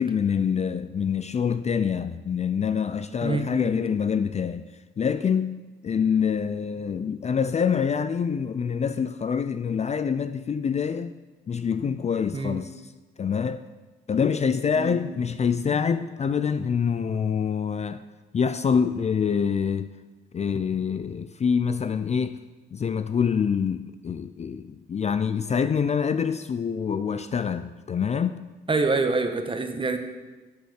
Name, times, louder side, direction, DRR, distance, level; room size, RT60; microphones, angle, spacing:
voice 1, 0.0-4.7 5.0-11.1 11.5-12.7 13.2-13.6 14.1-18.0 18.3-19.9 20.3-22.4 22.7-28.4, left 6 dB, 35° left, 0.5 m, -26 dB
voice 2, 3.2-3.8 12.3-12.6 14.8-15.0 28.7-30.0, right 3 dB, 25° right, 1.4 m, -26 dB
10.5 x 8.2 x 6.5 m
cardioid pair, 90°, 20 cm